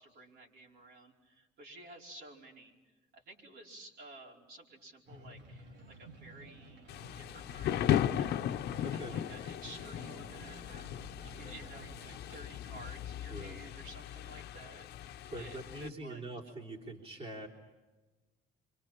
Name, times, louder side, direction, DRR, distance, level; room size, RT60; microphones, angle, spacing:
voice 1, 0.0-6.9 7.1-8.5 8.9-16.2, right 2 dB, 65° right, -2 dB, 5.0 m, -53 dB
sound 1, 5.1-12.2, right 2 dB, 90° right, 3.3 m, -52 dB
Thunder / Rain, 6.9-15.9, left 11 dB, 70° left, 0.9 m, -36 dB
voice 2, 8.8-9.2 13.3-13.6 15.3-17.5, right 2 dB, 35° right, -3 dB, 3.4 m, -43 dB
29.5 x 25.0 x 5.9 m, 1.2 s
cardioid pair, 135°, 17 cm